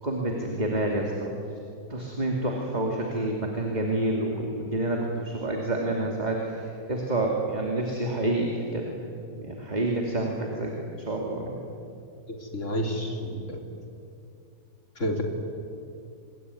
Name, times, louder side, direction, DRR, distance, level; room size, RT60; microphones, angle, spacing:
voice 1, 0.0-1.3 1.9-9.0 9.3-10.7 11.1-11.6, right 2 dB, 25° right, 0 dB, 2.8 m, -28 dB
voice 2, 12.5-13.6 15.0-15.2, equal, 45° left, 2 dB, 3.7 m, -29 dB
27.5 x 21.5 x 9.8 m, 2.6 s
omnidirectional pair, 1.9 m